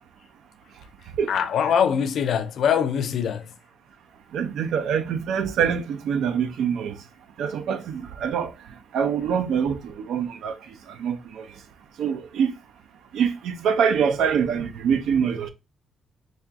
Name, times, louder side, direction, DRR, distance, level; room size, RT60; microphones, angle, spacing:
voice 1, 1.3-3.6, left 8 dB, 65° left, 0.5 m, -23 dB
voice 2, 4.3-7.0 7.4-8.5 8.9-10.6 11.0-11.5 12.0-12.5 13.1-15.5, right 7 dB, 75° right, 0.6 m, -24 dB
4.3 x 2.4 x 3.5 m
cardioid pair, 90°, 0 cm